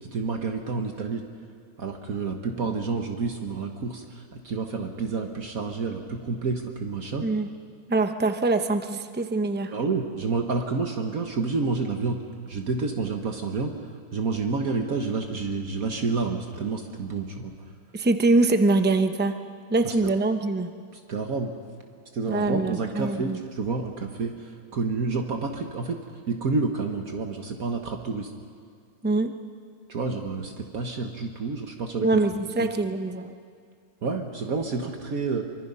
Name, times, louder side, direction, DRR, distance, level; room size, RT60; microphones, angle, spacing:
voice 1, 0.0-1.2 1.8-7.3 9.7-12.2 12.5-13.7 14.1-17.5 19.8-19.9 21.1-21.5 22.1-24.3 24.7-26.0 26.3-28.3 29.9-32.1 32.6-32.7 34.0-35.5, right 4 dB, 60° right, 4 dB, 1.6 m, -29 dB
voice 2, 7.9-9.7 17.9-19.4 19.7-20.7 22.3-23.4 29.0-29.3 32.0-33.3, right 2 dB, 10° right, 8 dB, 0.4 m, -23 dB
25.0 x 24.0 x 5.5 m, 2.1 s
omnidirectional pair, 1.8 m